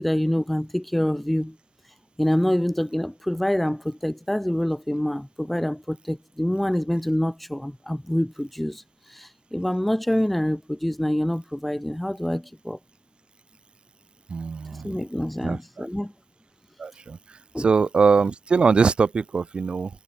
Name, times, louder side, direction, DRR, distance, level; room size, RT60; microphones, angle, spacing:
voice 1, 0.0-1.6 1.8-12.8 14.7-16.1 17.5-17.7, left 1 dB, ahead, 2.5 m, -26 dB
voice 2, 14.3-15.0 15.4-15.8 16.8-17.2 17.6-19.9, right 5 dB, 20° right, 7.6 m, -22 dB
cardioid pair, 165°, 5 cm